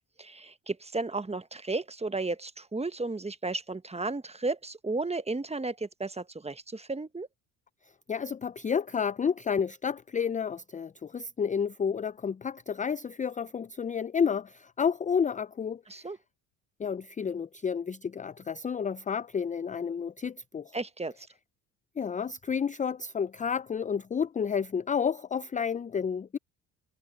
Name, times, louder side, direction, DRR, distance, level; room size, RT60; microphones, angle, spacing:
voice 1, 0.2-7.3 15.9-16.2 20.7-21.3, right 3 dB, 15° right, 1.3 m, -34 dB
voice 2, 8.1-16.1 16.8-20.8 22.0-26.4, left 6 dB, 15° left, 0.5 m, -30 dB
hypercardioid pair, 60°, 46 cm